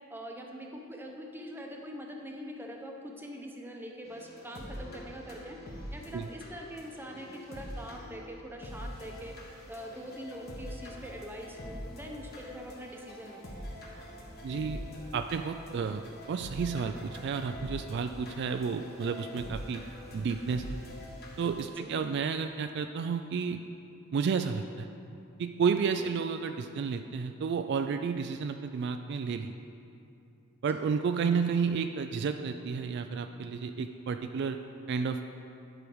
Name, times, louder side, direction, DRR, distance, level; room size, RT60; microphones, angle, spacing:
voice 1, 0.1-9.4 9.7-13.4 21.7-21.9 26.0-26.1 30.7-30.8, equal, 10° right, 1 dB, 0.8 m, -43 dB
sound 1, 4.1-21.7, equal, 50° left, 1.4 m, -44 dB
voice 2, 14.4-14.8 15.1-16.0 16.3-19.8 20.1-20.6 21.4-23.6 24.1-24.9 25.4-29.5 30.6-34.6 34.9-35.2, right 5 dB, 55° right, 7 dB, 0.3 m, -31 dB
9.9 x 5.0 x 6.2 m, 2.6 s
head